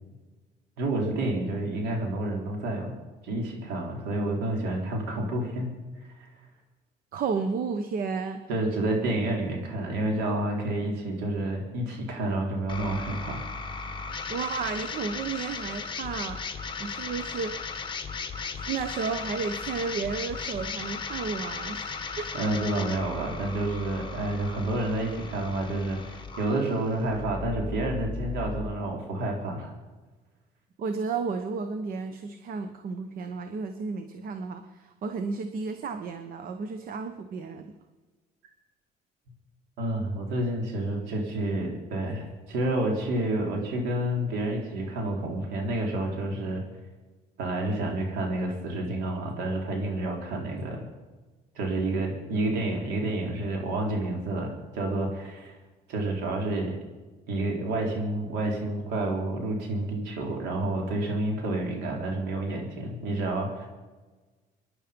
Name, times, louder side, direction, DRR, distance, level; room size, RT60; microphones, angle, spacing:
voice 1, 0.8-2.9 3.2-5.7 6.0-6.3 8.5-13.4 22.3-29.7 39.8-46.6 47.4-50.8 51.5-55.6 55.9-56.7 57.3-63.7, right 1 dB, 90° right, 0 dB, 4.1 m, -29 dB
voice 2, 7.1-8.4 14.3-16.4 16.8-17.6 18.7-22.3 30.8-37.7, right 5 dB, 60° right, 8 dB, 1.1 m, -32 dB
sound 1, 12.7-28.7, left 4 dB, 30° left, 1.5 m, -36 dB
24.0 x 11.0 x 5.3 m, 1.3 s
cardioid pair, 110°, 17 cm